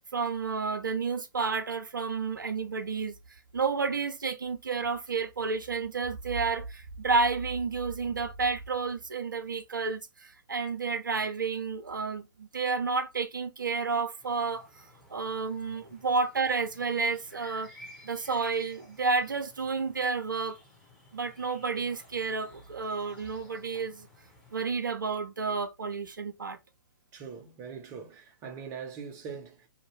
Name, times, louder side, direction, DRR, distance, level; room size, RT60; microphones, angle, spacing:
voice 1, 0.1-3.1 3.5-14.7 15.1-17.7 18.0-20.6 21.1-24.1 24.5-26.6, right 4 dB, 75° right, 0.4 m, -31 dB
sound 1, 14.2-24.6, left 1 dB, 5° left, 0.9 m, -55 dB
voice 2, 27.1-29.7, right 6 dB, 25° right, 0.6 m, -42 dB
2.7 x 2.2 x 3.0 m
figure-of-eight pair, 120°, 11 cm